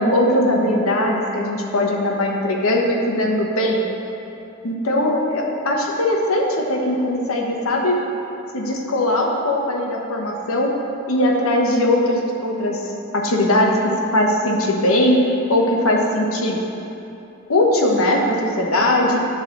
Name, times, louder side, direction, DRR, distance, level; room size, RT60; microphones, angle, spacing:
voice 1, 0.0-3.9 4.6-8.0 8.5-10.7 11.1-12.8 13.1-15.2 15.5-16.6 17.5-19.2, left 1 dB, 85° left, -1 dB, 1.1 m, -20 dB
10.5 x 4.1 x 6.0 m, 2.9 s
head